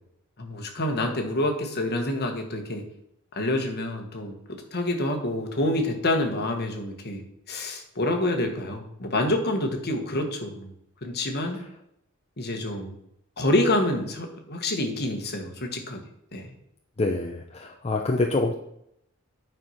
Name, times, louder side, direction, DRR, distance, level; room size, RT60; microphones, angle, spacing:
voice 1, 0.4-2.8 3.3-4.4 4.7-10.7 11.0-11.6 12.4-13.0 13.4-16.0 16.3-16.5, left 1 dB, 50° left, 4 dB, 1.4 m, -27 dB
voice 2, 17.0-18.5, left 2 dB, 30° left, 2 dB, 0.6 m, -26 dB
9.1 x 4.6 x 5.7 m, 0.75 s
head